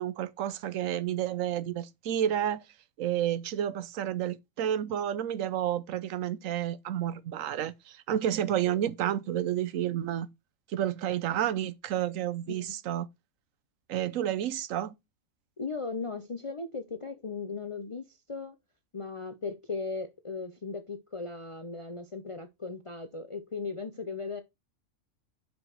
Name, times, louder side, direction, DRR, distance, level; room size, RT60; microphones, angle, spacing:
voice 1, 0.0-2.6 3.0-10.3 10.7-13.1 13.9-14.9, right 11 dB, 75° right, 1.0 m, -30 dB
voice 2, 15.6-18.6 18.9-24.4, left 4 dB, 45° left, 0.4 m, -37 dB
5.9 x 5.2 x 4.4 m
omnidirectional pair, 1.5 m